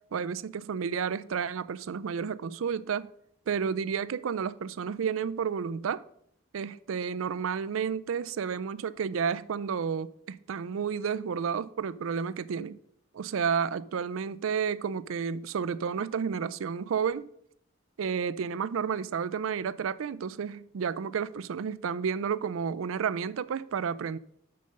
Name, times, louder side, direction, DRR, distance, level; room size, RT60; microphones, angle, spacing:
voice 1, 0.1-3.1 3.5-6.0 6.5-12.8 13.1-17.3 18.0-24.2, right 6 dB, 90° right, 0.4 m, -31 dB
6.7 x 6.6 x 5.2 m
head